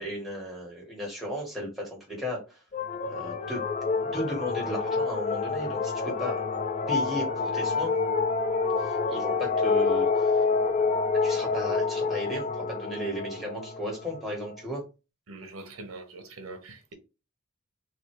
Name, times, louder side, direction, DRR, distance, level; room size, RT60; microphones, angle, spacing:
voice 1, 0.0-2.6 3.0-3.6 4.1-6.4 6.9-7.9 8.8-10.4 11.2-14.8, equal, ahead, 1.6 m, -35 dB
sound 1, 2.7-14.6, left 4 dB, 35° left, 0.4 m, -28 dB
voice 2, 15.3-16.9, right 2 dB, 90° right, 1.2 m, -43 dB
4.0 x 2.7 x 4.7 m
head